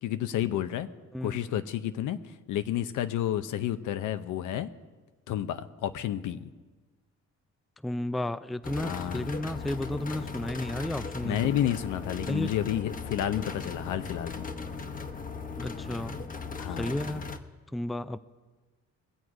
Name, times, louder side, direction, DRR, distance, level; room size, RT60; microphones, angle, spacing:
voice 1, 0.0-0.9 1.2-4.7 5.3-6.5 8.8-9.4 11.2-14.5 16.6-16.9, left 11 dB, 85° left, 11 dB, 0.8 m, -31 dB
voice 2, 1.1-1.5 7.8-11.6 12.3-12.5 15.6-16.3 16.8-17.3 17.7-18.2, left 1 dB, ahead, 14 dB, 0.4 m, -33 dB
sound 1, 8.6-17.4, left 4 dB, 30° left, 1.0 m, -38 dB
21.5 x 7.9 x 4.9 m, 1.3 s
cardioid pair, 90°, 30 cm